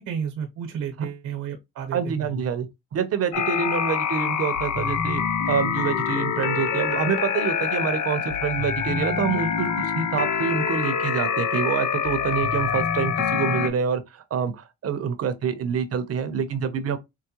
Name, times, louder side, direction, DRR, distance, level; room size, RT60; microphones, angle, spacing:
voice 1, 0.0-2.4, right 7 dB, 85° right, 1.0 m, -32 dB
voice 2, 1.9-2.7 2.9-5.2 5.5-17.0, right 7 dB, 55° right, 0.8 m, -26 dB
sound 1, 3.3-13.7, left 7 dB, 70° left, 0.8 m, -25 dB
4.6 x 2.2 x 2.9 m
cardioid pair, 90°, 30 cm